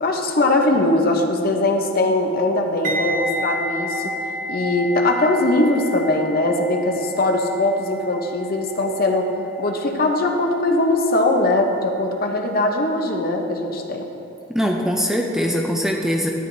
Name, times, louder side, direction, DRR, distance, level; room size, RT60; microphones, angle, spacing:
voice 1, 0.0-4.1 4.5-9.3 9.6-14.1, left 2 dB, 45° left, 3 dB, 0.8 m, -20 dB
sound 1, 2.8-11.8 12.1-12.4, right 1 dB, 40° right, 0.6 m, -31 dB
voice 2, 14.5-16.3, equal, ahead, 1 dB, 0.5 m, -22 dB
13.0 x 9.5 x 2.7 m, 2.8 s
head